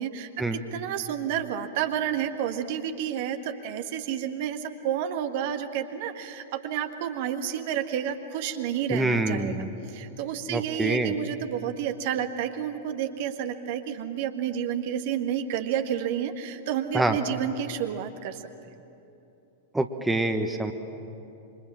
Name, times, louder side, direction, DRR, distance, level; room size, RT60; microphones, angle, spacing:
voice 1, 0.0-18.4, right 9 dB, 50° right, 7 dB, 1.5 m, -30 dB
voice 2, 8.9-9.7 10.5-11.1 16.9-17.2 19.7-20.7, right 2 dB, 5° right, 6 dB, 1.3 m, -26 dB
26.5 x 24.5 x 7.6 m, 2.8 s
figure-of-eight pair, 95°, 0 cm